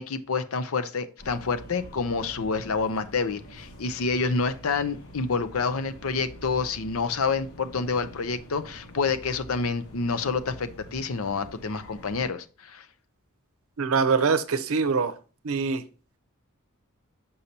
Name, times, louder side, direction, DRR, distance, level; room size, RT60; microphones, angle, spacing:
voice 1, 0.0-12.8, left 4 dB, 70° left, 11 dB, 0.6 m, -28 dB
sound 1, 1.2-12.3, right 1 dB, 90° left, 1.7 m, -46 dB
voice 2, 13.8-15.1 15.4-15.8, right 5 dB, 70° right, 12 dB, 0.6 m, -23 dB
6.7 x 5.5 x 2.8 m, 0.37 s
head